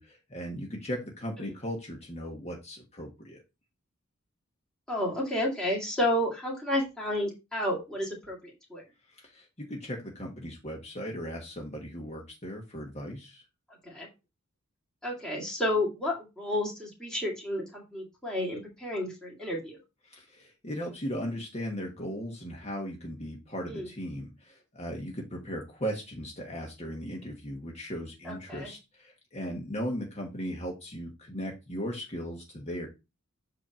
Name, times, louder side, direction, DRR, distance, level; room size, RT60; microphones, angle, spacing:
voice 1, 0.0-3.4 9.1-13.4 20.0-32.9, equal, 30° left, -1 dB, 1.4 m, -37 dB
voice 2, 4.9-8.8 13.9-14.1 15.0-19.8 23.7-23.9 28.3-28.7, left 1 dB, 5° left, -4 dB, 2.1 m, -31 dB
8.2 x 2.9 x 5.1 m, 0.25 s
head